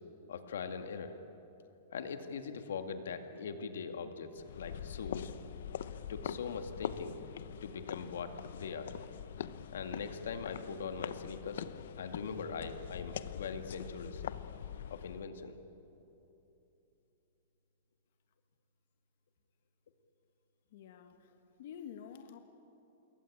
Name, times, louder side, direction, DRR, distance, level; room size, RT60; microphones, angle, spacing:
voice 1, 0.3-1.2 1.9-5.3 6.1-7.2 7.6-8.9 9.7-11.7 12.0-14.2 14.9-15.6, left 5 dB, 90° left, 7 dB, 2.1 m, -41 dB
sound 1, 4.4-15.3, left 9 dB, 70° left, 0.9 m, -43 dB
voice 2, 20.7-22.4, left 8 dB, 55° left, 7 dB, 1.6 m, -49 dB
27.5 x 22.0 x 8.7 m, 3.0 s
supercardioid pair, 165°, 0 cm